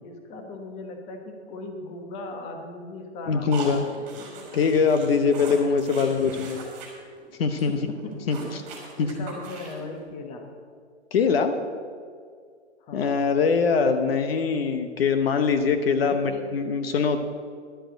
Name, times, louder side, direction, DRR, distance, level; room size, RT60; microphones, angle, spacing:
voice 1, 0.0-4.3 7.7-8.2 9.0-10.5 12.8-13.2 16.0-16.5, left 2 dB, 20° left, 4 dB, 1.2 m, -38 dB
voice 2, 3.3-3.8 4.5-6.6 7.4-7.8 8.3-8.6 9.0-9.1 11.1-11.6 12.9-17.2, left 5 dB, 55° left, 8 dB, 1.0 m, -23 dB
sound 1, 3.5-6.9 7.2-7.3 7.6-7.7 8.0-9.9, right 4 dB, 20° right, 3.2 m, -39 dB
11.5 x 7.7 x 7.7 m, 2.1 s
hypercardioid pair, 150°, 36 cm